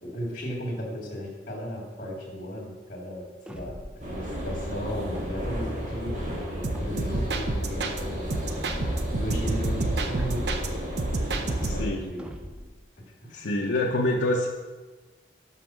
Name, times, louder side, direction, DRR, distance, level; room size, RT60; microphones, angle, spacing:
voice 1, 0.0-10.7 11.0-12.3 13.0-13.4, equal, 45° left, -6 dB, 2.1 m, -36 dB
sound 1, 3.5-4.1 5.2-5.8 6.7-7.4 8.5-9.1 10.2-10.9 12.2-12.8, equal, 5° right, 0.4 m, -41 dB
sound 2, 4.0-11.9, equal, 45° right, 1.5 m, -33 dB
sound 3, 6.6-8.0 8.3-10.7 11.0-12.0, right 2 dB, 70° right, 0.6 m, -30 dB
voice 2, 11.6-12.1 13.3-14.5, left 1 dB, 85° left, -1 dB, 0.6 m, -26 dB
5.9 x 5.7 x 6.1 m, 1.3 s
head